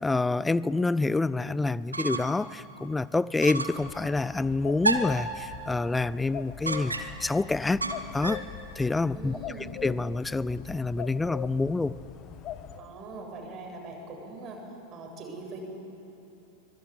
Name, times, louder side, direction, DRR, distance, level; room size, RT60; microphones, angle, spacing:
voice 1, 0.0-7.8 8.1-8.4 8.8-9.4 9.8-11.9, left 3 dB, 10° left, 19 dB, 0.5 m, -27 dB
sound 1, 1.7-2.5 2.8-2.9 3.4-3.9 4.8-5.3 6.6-7.3 7.8-8.5, right 2 dB, 80° right, 1.5 m, -30 dB
sound 2, 3.8-12.8, left 10 dB, 35° left, 1.5 m, -42 dB
voice 2, 9.1-9.7 12.8-15.6, right 3 dB, 30° right, 0 dB, 7.5 m, -42 dB
24.5 x 21.5 x 9.7 m, 2.9 s
figure-of-eight pair, 90°, 0 cm